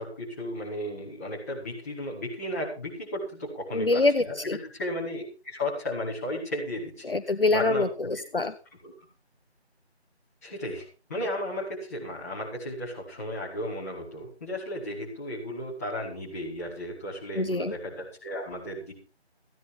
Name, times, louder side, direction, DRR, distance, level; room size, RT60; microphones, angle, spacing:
voice 1, 0.0-7.1 7.5-7.8 8.1-8.2 8.8-9.1 10.4-18.9, left 1 dB, 15° left, -6 dB, 4.9 m, -34 dB
voice 2, 3.7-4.6 7.0-8.5 17.3-17.7, left 2 dB, 55° left, 9 dB, 1.1 m, -25 dB
16.0 x 10.5 x 5.4 m, 0.35 s
figure-of-eight pair, 165°, 33 cm